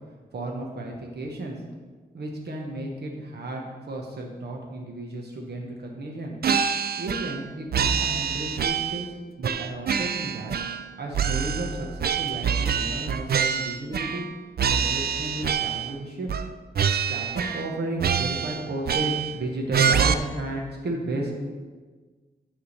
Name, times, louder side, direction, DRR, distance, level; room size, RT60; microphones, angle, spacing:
voice 1, 0.3-1.6 2.1-6.4 7.0-10.6 11.0-14.3 14.7-16.3 17.1-21.5, right 1 dB, 90° right, 0 dB, 1.1 m, -33 dB
sound 1, 6.4-7.4 7.7-9.1 9.4-10.9 11.1-14.3 14.6-15.9 16.3-16.5 16.7-17.7 18.0-19.4 19.7-20.1, right 7 dB, 70° right, 0.4 m, -26 dB
9.9 x 3.7 x 6.5 m, 1.4 s
wide cardioid pair, 115°, 16 cm